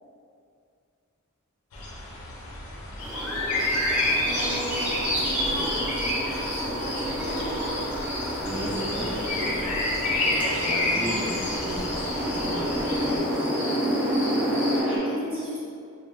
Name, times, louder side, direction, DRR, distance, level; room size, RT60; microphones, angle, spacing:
sound 1, 1.7-13.2, left 2 dB, 85° left, 0.4 m, -31 dB
sound 2, 3.0-15.0, equal, 5° right, 0.3 m, -29 dB
voice 1, 3.1-5.8 6.6-7.4 14.9-15.6, equal, 25° right, -8 dB, 0.7 m, -37 dB
sound 3, 3.6-14.8, left 1 dB, 35° left, 0.7 m, -35 dB
voice 2, 8.4-9.5 10.2-13.8, equal, 65° right, -13 dB, 0.6 m, -34 dB
2.8 x 2.1 x 2.6 m, 2.4 s
head